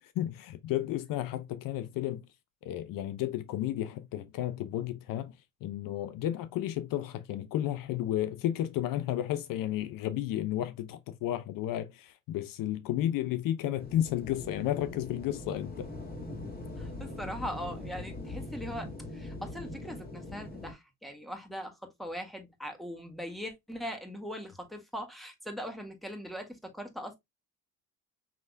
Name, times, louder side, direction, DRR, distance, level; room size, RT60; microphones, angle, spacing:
voice 1, 0.2-2.3 2.6-5.3 5.6-15.9, left 12 dB, 65° left, 0.7 m, -32 dB
sound 1, 13.8-20.7, left 2 dB, 25° left, 2.3 m, -42 dB
voice 2, 16.8-27.2, equal, ahead, 1.8 m, -40 dB
5.9 x 3.4 x 2.2 m
supercardioid pair, 90°, 36 cm